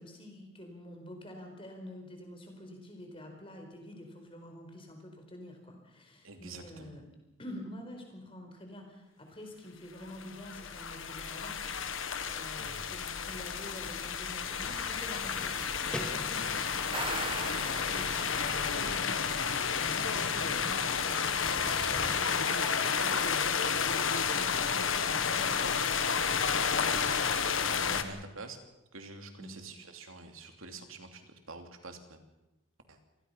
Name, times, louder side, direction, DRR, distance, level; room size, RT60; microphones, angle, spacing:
voice 1, 0.0-7.0 7.4-11.7 12.3-19.3 19.8-25.5 26.7-27.0 27.8-28.1 29.4-29.5, left 1 dB, 25° left, 3 dB, 4.5 m, -48 dB
voice 2, 6.2-6.9 12.6-12.8 26.8-27.2 27.6-28.6 28.9-32.2 32.9-33.0, right 3 dB, 80° right, 5 dB, 3.0 m, -47 dB
sound 1, 10.0-28.0, left 6 dB, 75° left, 1.5 m, -31 dB
sound 2, 14.6-22.2, equal, 5° left, 2.4 m, -45 dB
sound 3, 16.7-18.7, right 4 dB, 25° right, 1.0 m, -40 dB
27.0 x 19.0 x 5.8 m, 0.98 s
head